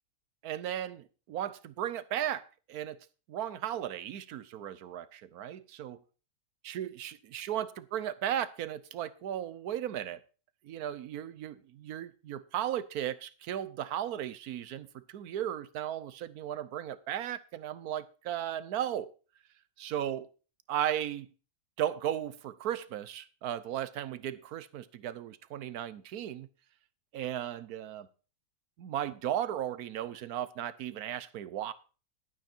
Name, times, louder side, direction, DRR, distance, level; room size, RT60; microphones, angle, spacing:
voice 1, 0.4-2.4 2.7-3.0 3.3-6.0 6.7-10.2 10.6-19.1 19.8-20.3 20.7-21.3 21.8-26.5 27.1-28.1 28.8-31.7, right 11 dB, 90° right, 1.3 m, -36 dB
12.0 x 9.1 x 4.4 m
omnidirectional pair, 1.5 m